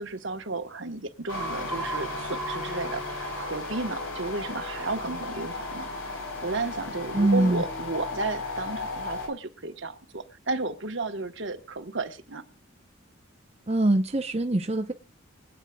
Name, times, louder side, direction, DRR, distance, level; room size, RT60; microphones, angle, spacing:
voice 1, 0.0-5.9 6.4-12.4, right 3 dB, 60° right, 8 dB, 1.2 m, -33 dB
sound 1, 1.3-9.3, left 2 dB, 70° left, 3.8 m, -34 dB
voice 2, 7.1-7.6 13.7-14.9, right 1 dB, 30° right, 4 dB, 0.7 m, -23 dB
25.0 x 9.0 x 2.3 m, 0.33 s
head